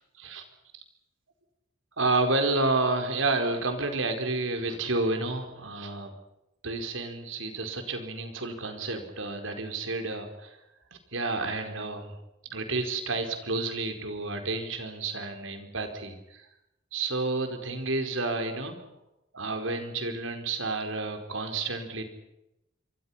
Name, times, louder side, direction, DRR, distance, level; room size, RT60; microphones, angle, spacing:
voice 1, 2.0-6.1 6.6-10.6 11.1-12.1 12.5-16.4 16.9-18.8 19.3-22.0, right 3 dB, 80° right, 5 dB, 4.7 m, -30 dB
27.5 x 24.5 x 5.9 m, 0.87 s
head